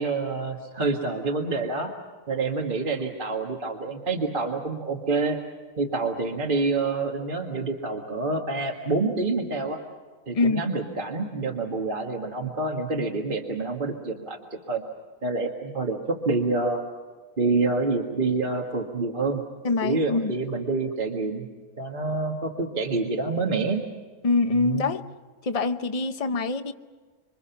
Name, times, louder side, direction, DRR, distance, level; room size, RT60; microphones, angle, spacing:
voice 1, 0.0-1.9 2.3-5.4 5.8-9.8 10.3-14.8 15.2-16.8 17.4-19.4 19.8-21.5 21.8-23.8 24.5-24.9, right 3 dB, 35° right, 1 dB, 1.8 m, -27 dB
voice 2, 19.6-20.3 24.2-25.1 25.4-26.7, left 3 dB, 30° left, 9 dB, 0.7 m, -24 dB
27.0 x 25.5 x 5.8 m, 1.4 s
omnidirectional pair, 1.6 m